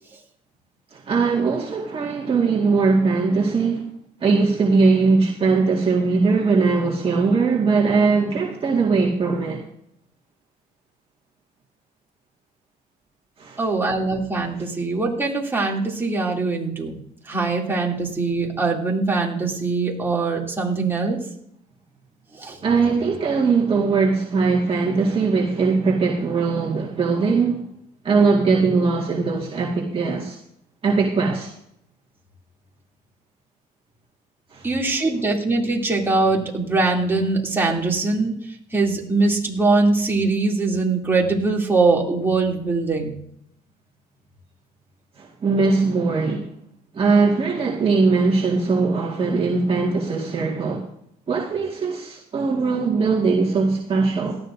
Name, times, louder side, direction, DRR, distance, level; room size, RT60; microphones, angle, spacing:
voice 1, 0.9-3.8 4.2-9.6 13.4-13.6 22.6-27.6 28.0-30.4 30.8-31.5 34.5-34.7 45.2-46.5 46.9-50.9 51.3-54.4, right 4 dB, 35° right, -2 dB, 1.9 m, -20 dB
voice 2, 13.6-17.0 17.2-21.2 22.3-22.6 34.6-38.4 38.7-43.1, right 3 dB, 15° right, -2 dB, 2.8 m, -22 dB
18.0 x 13.0 x 2.7 m, 0.73 s
cardioid pair, 110°, 17 cm